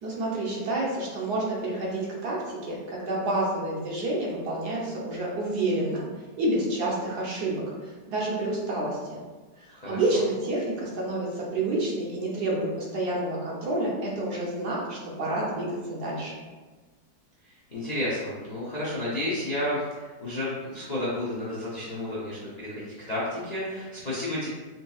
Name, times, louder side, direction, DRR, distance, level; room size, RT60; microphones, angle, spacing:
voice 1, 0.0-6.0 6.4-9.2 9.6-16.3, right 2 dB, 70° right, -3 dB, 1.4 m, -29 dB
voice 2, 17.7-24.5, left 1 dB, 45° left, -8 dB, 0.5 m, -31 dB
5.1 x 2.8 x 2.3 m, 1.3 s
omnidirectional pair, 1.8 m